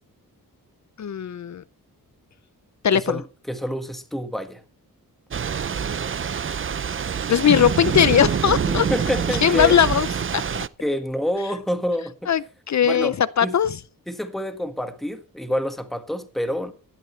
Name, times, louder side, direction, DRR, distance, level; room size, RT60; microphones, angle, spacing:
voice 1, 1.0-1.6 2.8-3.2 7.3-8.9 9.4-10.1 10.3-10.4 12.3-13.8, left 9 dB, 55° left, 0.5 m, -19 dB
voice 2, 2.9-4.6 8.7-9.8 10.8-12.3 12.8-13.1 13.4-13.6 14.1-16.7, equal, ahead, 1.6 m, -27 dB
Thunder / Rain, 5.3-10.7, right 7 dB, 35° right, 0.5 m, -25 dB
16.5 x 12.0 x 3.2 m
wide cardioid pair, 100°, 35 cm